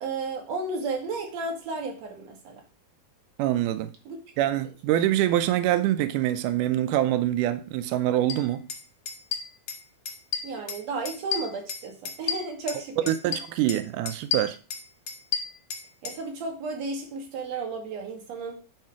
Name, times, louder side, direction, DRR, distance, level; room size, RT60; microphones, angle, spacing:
voice 1, 0.0-2.6 4.1-4.2 10.4-13.4 16.0-18.6, right 3 dB, 55° right, 2.6 m, -33 dB
voice 2, 3.4-3.9 4.4-8.7 13.1-14.6, right 13 dB, 90° right, 1.8 m, -25 dB
sound 1, 8.3-8.4 8.7-8.8 9.1-9.8 10.1-10.8 11.1-12.8 13.1-13.8 14.1-16.2, left 7 dB, 65° left, 1.5 m, -31 dB
9.9 x 3.7 x 4.7 m
omnidirectional pair, 4.2 m